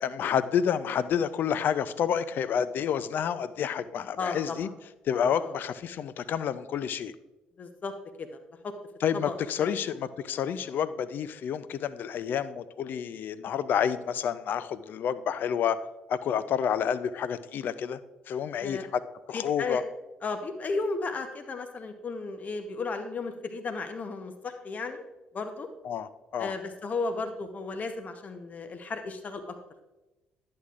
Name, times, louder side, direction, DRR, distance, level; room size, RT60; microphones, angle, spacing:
voice 1, 0.0-4.7 5.1-7.1 9.0-15.8 16.1-18.0 18.3-18.8 19.3-19.8 25.8-26.5, left 8 dB, 60° left, 14 dB, 0.4 m, -29 dB
voice 2, 4.2-4.7 5.4-5.5 7.6-8.7 9.1-9.8 18.6-18.8 19.3-19.8 20.2-25.0 25.3-25.7 26.4-29.6, left 3 dB, 45° left, 7 dB, 0.9 m, -34 dB
11.0 x 8.6 x 2.5 m, 1.1 s
hypercardioid pair, 50°, 4 cm